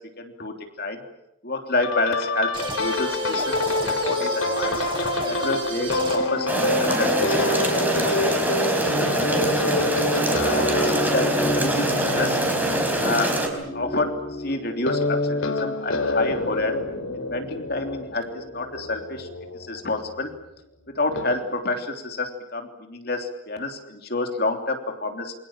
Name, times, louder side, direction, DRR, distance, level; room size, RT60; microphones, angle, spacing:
voice 1, 0.2-1.0 1.4-4.9 5.2-10.1 10.5-12.4 12.9-13.3 13.7-16.8 17.1-19.3 19.6-20.3 20.9-25.3, left 2 dB, 50° left, 4 dB, 3.2 m, -29 dB
sound 1, 1.8-20.3 21.1-21.4, left 2 dB, 80° left, 3.6 m, -27 dB
sound 2, 2.5-6.4, right 2 dB, 25° right, 6.3 m, -32 dB
sound 3, 6.5-13.5, right 1 dB, 10° right, 4.4 m, -24 dB
28.5 x 24.5 x 7.5 m, 0.83 s
head